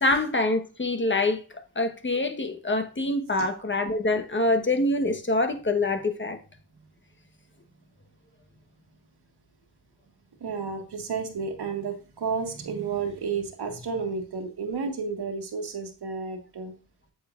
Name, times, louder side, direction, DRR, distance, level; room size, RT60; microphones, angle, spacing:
voice 1, 0.0-6.4, left 2 dB, 30° left, 1.2 m, -25 dB
voice 2, 10.4-16.7, right 5 dB, 70° right, 1.7 m, -31 dB
8.4 x 7.2 x 2.5 m
cardioid pair, 55°, 40 cm